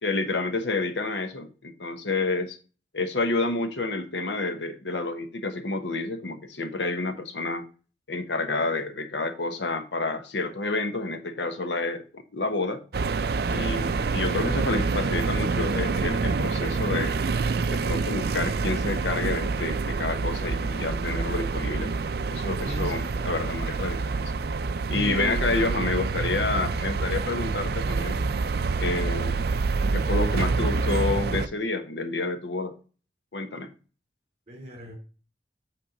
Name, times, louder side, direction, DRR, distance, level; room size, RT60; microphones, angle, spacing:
voice 1, 0.0-2.6 2.9-7.6 8.1-12.8 13.5-17.2 17.7-21.9 22.3-24.3 24.9-28.2 28.8-29.5 29.9-32.7 33.3-33.7, left 3 dB, 90° left, 1.1 m, -29 dB
sound 1, 12.9-31.5, right 4 dB, 60° right, 0.4 m, -27 dB
voice 2, 22.6-23.3 24.9-25.7 34.5-34.9, equal, 35° right, 3.0 m, -36 dB
8.4 x 3.5 x 6.5 m
head